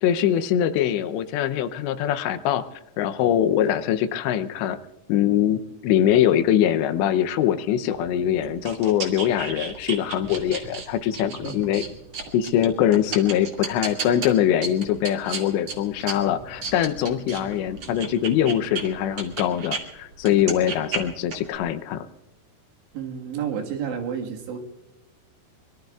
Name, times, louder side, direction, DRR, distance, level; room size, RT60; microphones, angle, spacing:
voice 1, 0.0-2.7 3.0-4.8 5.1-11.8 12.3-22.1, left 10 dB, 80° left, 11 dB, 2.9 m, -23 dB
sound 1, 7.9-19.8 20.2-21.6, right 4 dB, 45° right, 2.6 m, -34 dB
voice 2, 11.2-11.6 22.9-24.6, right 7 dB, 80° right, 1 dB, 3.8 m, -31 dB
25.5 x 23.0 x 2.4 m, 1.0 s
omnidirectional pair, 5.1 m